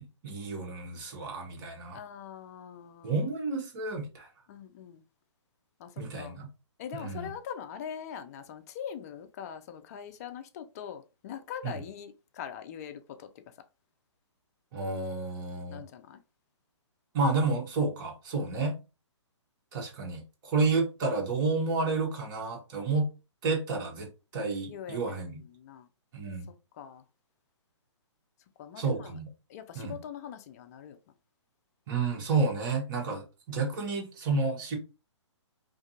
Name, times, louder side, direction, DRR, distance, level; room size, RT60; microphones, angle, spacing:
voice 1, 0.0-2.0 3.0-4.3 6.0-6.5 6.9-7.3 11.6-11.8 14.7-15.8 17.1-18.8 19.7-23.1 23.4-25.4 26.1-26.5 28.8-29.3 29.7-30.0 31.9-34.8, right 3 dB, 45° right, 1.0 m, -30 dB
voice 2, 1.9-3.1 4.5-5.0 5.8-6.4 6.8-13.3 15.7-16.2 24.7-25.2 25.5-25.9 26.8-27.0 28.6-29.1 29.5-31.0, left 8 dB, 30° left, 0.4 m, -42 dB
2.5 x 2.3 x 2.7 m
hypercardioid pair, 135°, 16 cm